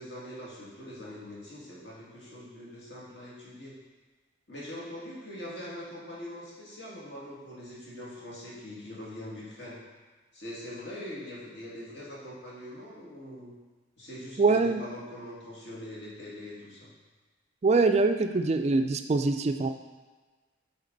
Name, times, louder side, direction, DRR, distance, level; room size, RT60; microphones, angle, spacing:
voice 1, 0.0-3.8 4.5-9.8 10.3-13.5 14.0-16.9, left 1 dB, 55° left, -6 dB, 2.1 m, -42 dB
voice 2, 14.4-14.8 17.6-19.7, right 3 dB, 35° right, 8 dB, 0.3 m, -24 dB
8.3 x 4.5 x 3.9 m, 1.3 s
head